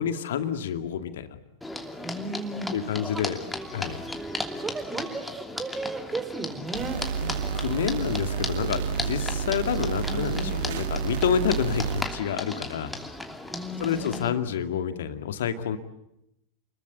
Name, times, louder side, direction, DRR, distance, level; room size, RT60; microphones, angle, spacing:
voice 1, 0.0-1.4 2.7-3.4 3.7-4.0 7.2-7.3 7.5-12.9 13.8-15.8, left 8 dB, 60° left, 9 dB, 2.3 m, -28 dB
sound 1, 1.6-14.3, left 1 dB, 5° left, 2.9 m, -36 dB
voice 2, 2.0-2.8 3.1-3.2 3.9-4.0 4.6-7.0 10.0-10.7 13.5-14.4, right 2 dB, 15° right, 9 dB, 4.3 m, -35 dB
sound 2, 6.7-12.0, right 7 dB, 55° right, 1.6 m, -30 dB
30.0 x 22.0 x 8.1 m, 0.81 s
figure-of-eight pair, 90°, 0 cm